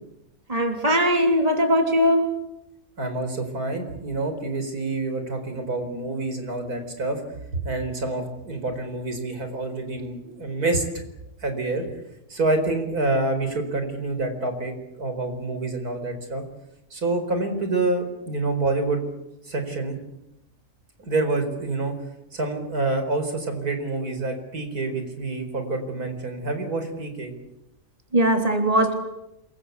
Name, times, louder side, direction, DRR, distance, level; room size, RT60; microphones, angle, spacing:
voice 1, 0.5-2.3 28.1-28.9, equal, 25° right, 5 dB, 3.3 m, -20 dB
voice 2, 3.0-10.8 11.4-11.9 12.3-16.4 16.9-19.0 19.4-19.9 21.0-21.9 22.3-27.3, right 2 dB, 85° right, 7 dB, 5.0 m, -27 dB
28.0 x 23.0 x 8.3 m, 0.87 s
omnidirectional pair, 1.6 m